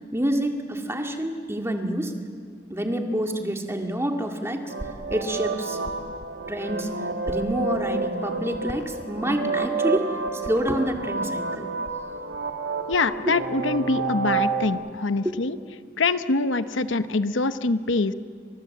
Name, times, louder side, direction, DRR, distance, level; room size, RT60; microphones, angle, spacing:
voice 1, 0.1-2.1 2.7-4.7 5.1-5.8 6.5-6.9 7.3-11.7 13.2-13.4 15.2-15.4, right 1 dB, 15° right, 3 dB, 2.2 m, -27 dB
sound 1, 4.7-14.7, right 4 dB, 65° right, 2.4 m, -29 dB
voice 2, 12.9-15.6 16.0-18.1, left 3 dB, 80° left, 12 dB, 0.9 m, -24 dB
29.5 x 25.0 x 7.9 m, 2.2 s
head